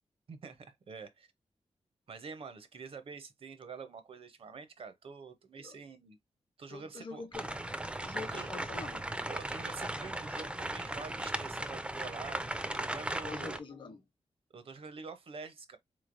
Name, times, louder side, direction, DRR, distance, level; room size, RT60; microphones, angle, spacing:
voice 1, 0.3-1.3 2.1-6.2 6.6-7.2 8.3-8.5 9.3-13.6 14.5-15.8, right 5 dB, 55° right, 0.6 m, -47 dB
voice 2, 6.7-7.5 8.0-9.1 13.2-14.0, left 4 dB, 45° left, 0.8 m, -44 dB
sound 1, 7.3-13.6, right 1 dB, 10° right, 0.4 m, -37 dB
3.8 x 3.1 x 2.5 m
wide cardioid pair, 145°, 11 cm